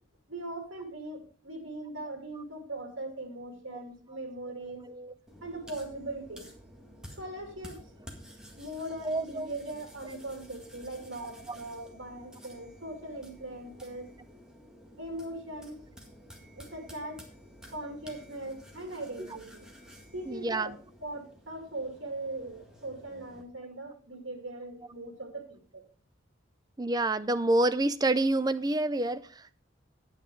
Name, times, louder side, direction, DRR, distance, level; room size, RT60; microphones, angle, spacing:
voice 1, 0.3-4.9 5.4-6.5 7.2-7.8 8.5-14.1 15.0-15.8 16.6-17.2 17.7-19.7 20.1-20.7 21.0-25.8, right 2 dB, 70° right, 2.6 m, -40 dB
voice 2, 4.8-5.1 9.0-9.5 11.5-11.6 19.2-19.3 20.3-20.8 26.8-29.5, right 2 dB, 20° right, 0.5 m, -28 dB
sound 1, 5.3-23.4, equal, 5° right, 1.8 m, -52 dB
9.6 x 8.9 x 4.6 m
head